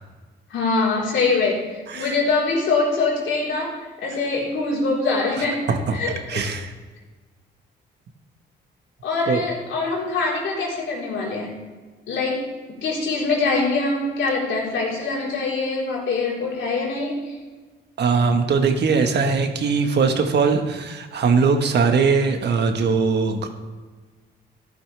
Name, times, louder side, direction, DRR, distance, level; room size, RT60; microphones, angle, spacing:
voice 1, 0.5-1.7 1.9-6.4 9.0-11.6 12.1-12.5 12.8-17.3, left 3 dB, 75° left, -4 dB, 4.1 m, -24 dB
voice 2, 6.3-6.7 9.3-9.4 18.0-23.5, right 5 dB, 60° right, 5 dB, 1.5 m, -20 dB
13.5 x 11.5 x 3.4 m, 1.3 s
cardioid pair, 90°, 20 cm